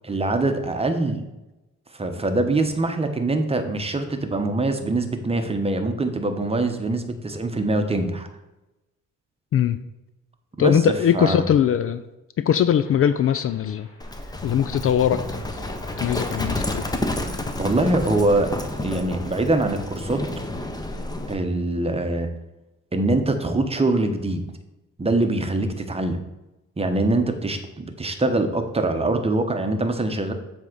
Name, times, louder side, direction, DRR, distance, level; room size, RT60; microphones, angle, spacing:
voice 1, 0.0-1.2 1.9-8.3 10.6-10.8 11.1-11.4 17.6-20.2 21.3-22.3 22.9-24.4 25.0-26.2 26.8-30.3, right 2 dB, 20° right, 6 dB, 1.0 m, -23 dB
voice 2, 10.6-12.0 12.4-13.9 14.4-15.6 16.0-16.8, left 9 dB, 50° left, 12 dB, 0.4 m, -21 dB
sound 1, 12.8-18.7, left 1 dB, 70° left, 2.5 m, -41 dB
Livestock farm animals working animals, 14.0-21.4, left 1 dB, 15° left, 0.9 m, -30 dB
7.5 x 3.6 x 6.1 m, 0.98 s
cardioid pair, 90°, 30 cm